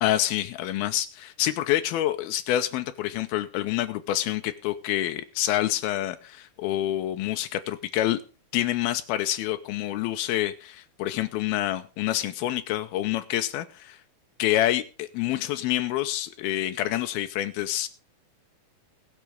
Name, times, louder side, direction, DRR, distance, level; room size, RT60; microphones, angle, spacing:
voice 1, 0.0-8.2 8.5-14.0 14.4-17.9, left 13 dB, 85° left, 8 dB, 2.7 m, -27 dB
20.0 x 6.7 x 5.0 m, 0.35 s
omnidirectional pair, 4.2 m